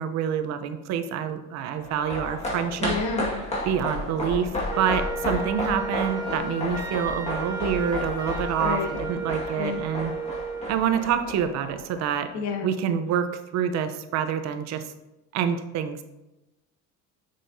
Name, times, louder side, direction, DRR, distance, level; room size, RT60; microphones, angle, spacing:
voice 1, 0.0-3.0 3.7-4.5 4.8-10.1 10.7-12.3 12.6-14.9 15.3-16.0, right 8 dB, 55° right, 9 dB, 0.8 m, -27 dB
sound 1, 1.8-12.3 12.6-12.7, left 1 dB, 20° left, 1.8 m, -33 dB
voice 2, 2.8-3.4 8.6-8.9 9.6-9.8 12.3-12.7, left 5 dB, 60° left, 3 dB, 1.4 m, -29 dB
Wind instrument woodwind instrument, 4.7-10.8, right 3 dB, 10° right, 1.6 m, -34 dB
7.4 x 6.7 x 2.7 m, 0.96 s
cardioid pair, 135°, 33 cm